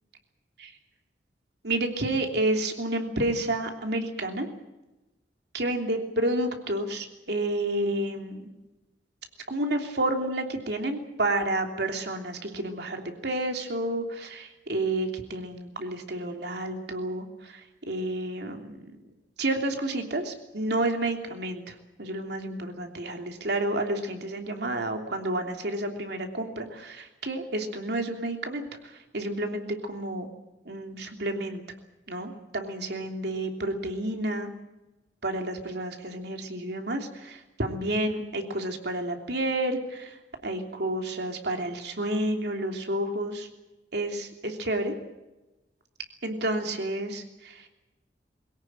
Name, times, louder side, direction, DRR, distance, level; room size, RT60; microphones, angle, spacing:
voice 1, 1.6-4.5 5.5-8.5 9.5-18.9 19.4-30.3 30.6-31.6 32.1-34.5 35.2-43.5 43.9-44.9 46.2-47.7, right 1 dB, 65° right, 4 dB, 3.1 m, -30 dB
22.5 x 17.5 x 9.1 m, 1.0 s
head